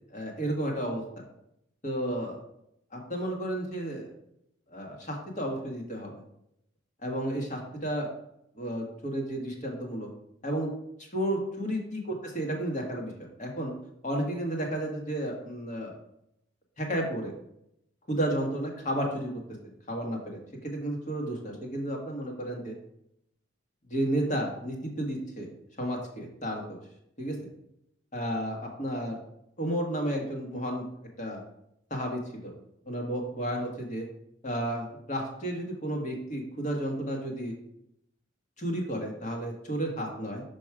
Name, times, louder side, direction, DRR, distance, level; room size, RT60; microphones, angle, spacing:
voice 1, 0.1-1.0 1.8-2.4 2.9-4.1 4.7-6.2 7.0-8.1 8.5-10.1 10.4-10.7 11.1-13.7 14.0-15.9 16.8-17.3 18.1-19.4 19.9-22.7 23.9-25.5 25.8-26.8 27.2-27.3 28.1-29.2 29.6-30.8 31.2-31.4 31.9-32.5 32.8-34.0 34.4-37.5 38.6-40.4, right 1 dB, 40° left, 1 dB, 1.6 m, -32 dB
6.1 x 5.2 x 4.8 m, 0.78 s
head